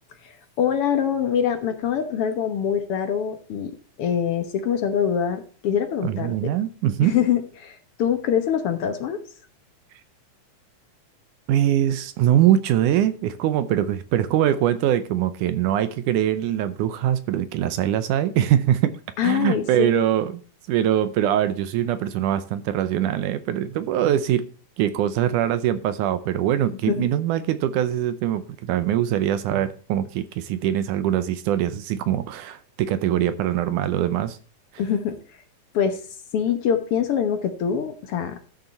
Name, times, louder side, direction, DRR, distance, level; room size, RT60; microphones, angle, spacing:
voice 1, 0.2-3.7 4.0-6.5 7.0-9.2 19.2-20.0 26.9-27.1 34.8-35.1 35.7-36.0 36.3-38.4, left 8 dB, 60° left, 7 dB, 1.6 m, -24 dB
voice 2, 6.0-7.2 11.5-20.4 20.7-24.5 24.8-34.4, right 11 dB, 80° right, 13 dB, 2.1 m, -23 dB
13.0 x 6.6 x 4.2 m, 0.40 s
omnidirectional pair, 3.8 m